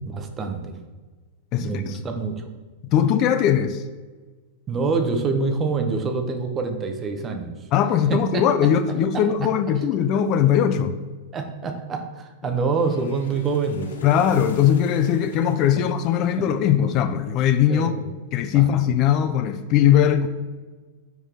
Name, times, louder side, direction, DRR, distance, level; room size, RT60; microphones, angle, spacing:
voice 1, 0.1-0.8 1.6-2.5 4.7-7.5 8.1-9.5 11.3-13.9 15.8-15.9 16.4-16.5 17.7-18.1 18.5-18.7, right 4 dB, 25° right, 5 dB, 0.7 m, -26 dB
voice 2, 1.5-2.0 2.9-3.8 7.7-10.9 14.0-17.9 18.3-20.3, left 9 dB, 40° left, 10 dB, 0.4 m, -20 dB
sound 1, 12.7-16.9, left 4 dB, 90° left, 0.7 m, -43 dB
5.0 x 4.6 x 4.3 m, 1.3 s
hypercardioid pair, 125°, 0 cm